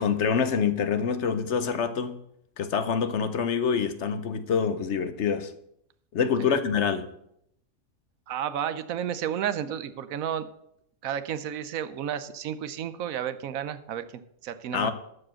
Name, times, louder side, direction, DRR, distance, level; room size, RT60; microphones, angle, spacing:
voice 1, 0.0-2.2 2.6-5.5 6.1-7.1 14.7-14.9, left 6 dB, 60° left, 11 dB, 1.0 m, -26 dB
voice 2, 8.3-10.5 11.0-14.9, right 9 dB, 75° right, 12 dB, 1.1 m, -32 dB
12.5 x 4.9 x 7.6 m, 0.74 s
omnidirectional pair, 1.5 m